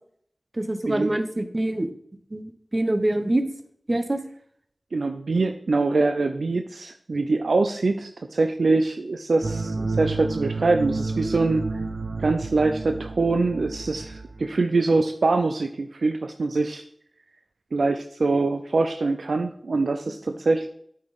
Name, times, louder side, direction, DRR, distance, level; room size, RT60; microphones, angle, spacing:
voice 1, 0.5-1.9 2.3-3.5 3.9-4.2, right 1 dB, 40° right, 9 dB, 0.9 m, -25 dB
voice 2, 4.9-11.6 12.2-16.8 17.7-20.7, right 3 dB, 90° right, 7 dB, 0.4 m, -24 dB
sound 1, 9.4-14.5, right 3 dB, 70° right, 0.8 m, -31 dB
8.5 x 5.1 x 4.1 m, 0.66 s
wide cardioid pair, 40°, 0 cm